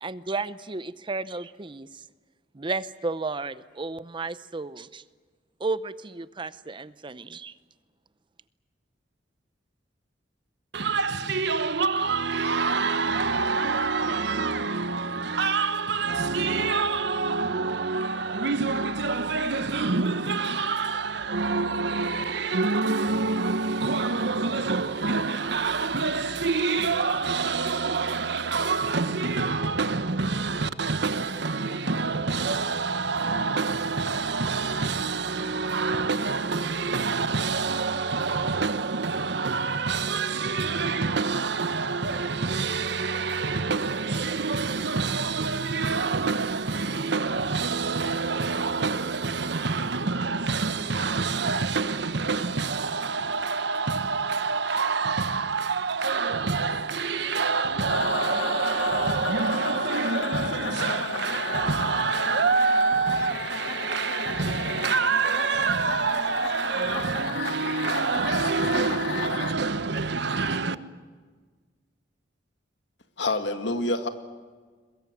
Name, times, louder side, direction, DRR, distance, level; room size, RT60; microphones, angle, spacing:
voice 1, 0.0-1.9 2.5-5.0 5.6-7.5, right 3 dB, 25° right, 0.7 m, -33 dB
voice 2, 10.7-70.8, right 4 dB, 65° right, 1.1 m, -26 dB
sound 1, 57.9-69.5, left 3 dB, 85° left, 1.8 m, -33 dB
voice 3, 73.2-74.1, left 2 dB, 70° left, 2.0 m, -26 dB
23.0 x 21.5 x 9.3 m
head